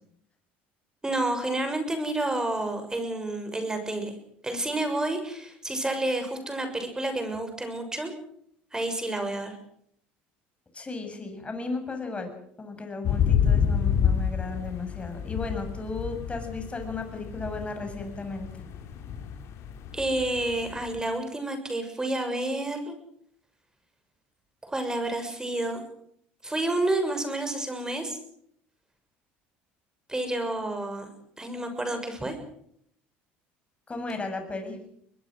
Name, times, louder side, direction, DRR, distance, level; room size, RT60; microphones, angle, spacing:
voice 1, 1.0-4.1 4.4-8.1 8.7-9.5 19.9-22.9 24.6-25.8 26.4-28.2 30.1-31.1 31.4-32.4, right 2 dB, 10° right, 7 dB, 6.6 m, -29 dB
voice 2, 10.7-12.3 12.6-18.5 33.9-34.8, left 3 dB, 20° left, 6 dB, 7.3 m, -35 dB
sound 1, 13.0-21.0, left 8 dB, 60° left, 4.0 m, -28 dB
23.5 x 21.5 x 6.4 m, 0.69 s
supercardioid pair, 85°, 5 cm